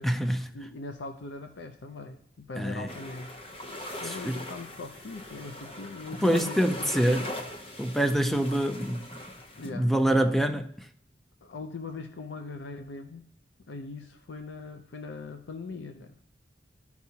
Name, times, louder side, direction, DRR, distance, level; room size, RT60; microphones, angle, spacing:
voice 1, 0.0-0.5 2.6-2.9 4.1-4.4 6.2-7.3 7.8-9.1 9.7-10.7, right 1 dB, ahead, 0.4 m, -25 dB
voice 2, 0.5-3.3 4.0-6.9 8.3-8.4 9.6-10.3 11.4-13.2 13.7-16.2, left 3 dB, 85° left, 0.5 m, -40 dB
sound 1, 2.9-9.7, left 1 dB, 30° left, 0.7 m, -40 dB
13.0 x 4.6 x 2.8 m
head